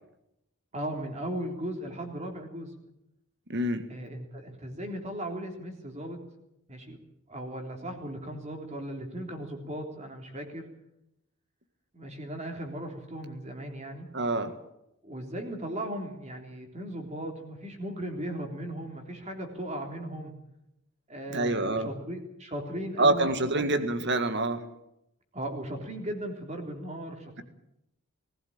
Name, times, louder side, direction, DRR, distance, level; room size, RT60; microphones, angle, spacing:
voice 1, 0.7-2.7 3.9-6.2 6.7-7.0 7.3-10.7 11.9-14.1 15.0-20.3 21.1-23.3 23.5-23.8 25.3-27.4, right 1 dB, 30° right, 3 dB, 3.5 m, -37 dB
voice 2, 3.5-3.9 14.1-14.5 21.3-21.9 23.0-24.6, right 2 dB, 50° right, 10 dB, 1.8 m, -26 dB
19.5 x 17.0 x 8.7 m, 0.84 s
head